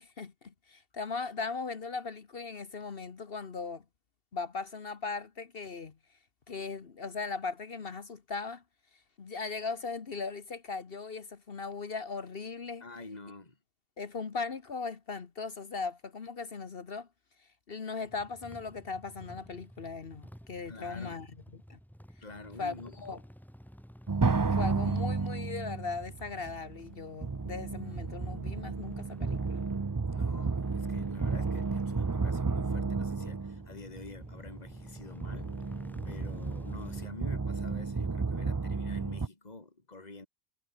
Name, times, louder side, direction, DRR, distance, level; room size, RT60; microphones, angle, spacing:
voice 1, 0.0-3.8 4.3-6.0 6.5-8.6 9.2-12.9 14.0-17.1 17.7-21.3 21.5-21.8 22.6-23.2 24.4-29.6, left 4 dB, 60° left, 1.5 m, -38 dB
voice 2, 12.8-13.6 20.6-21.2 22.2-22.9 30.1-40.3, left 3 dB, 40° left, 2.7 m, -48 dB
sound 1, 18.0-37.1, equal, ahead, 4.1 m, -51 dB
sound 2, 24.1-39.3, right 4 dB, 25° right, 0.5 m, -32 dB
omnidirectional pair, 1.1 m